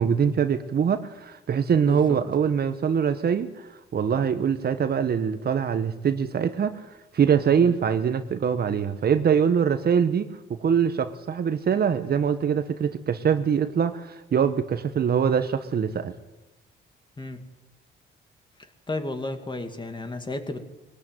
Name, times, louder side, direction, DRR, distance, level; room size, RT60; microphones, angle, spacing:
voice 1, 0.0-3.7 3.9-6.8 7.1-16.1, right 7 dB, 50° right, 10 dB, 1.4 m, -23 dB
voice 2, 1.8-2.2 7.6-7.8 17.2-17.4 18.6-20.7, left 2 dB, 25° left, 7 dB, 2.5 m, -33 dB
21.0 x 17.5 x 9.2 m, 1.0 s
cardioid pair, 90°, 20 cm